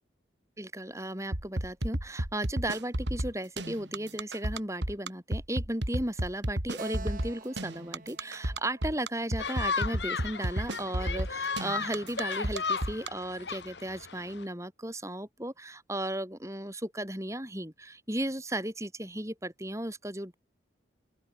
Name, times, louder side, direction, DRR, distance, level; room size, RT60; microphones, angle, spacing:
voice 1, 0.6-20.4, right 1 dB, 15° right, 6.8 m, -35 dB
sound 1, 1.3-13.1, right 1 dB, 70° right, 3.6 m, -32 dB
Keyboard (musical), 6.8-10.2, right 3 dB, 45° right, 3.8 m, -48 dB
sound 2, 9.4-14.4, left 5 dB, 70° left, 1.8 m, -35 dB
open air
head